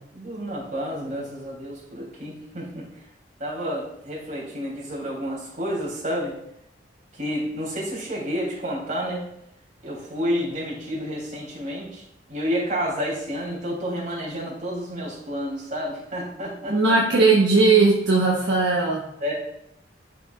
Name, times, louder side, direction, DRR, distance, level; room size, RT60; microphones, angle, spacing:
voice 1, 0.1-2.9 3.4-6.3 7.2-9.2 9.8-12.0 12.3-17.0 19.2-19.3, equal, 45° right, -3 dB, 3.0 m, -30 dB
voice 2, 16.7-19.1, right 3 dB, 75° right, -3 dB, 1.0 m, -18 dB
11.5 x 5.0 x 2.4 m, 0.77 s
head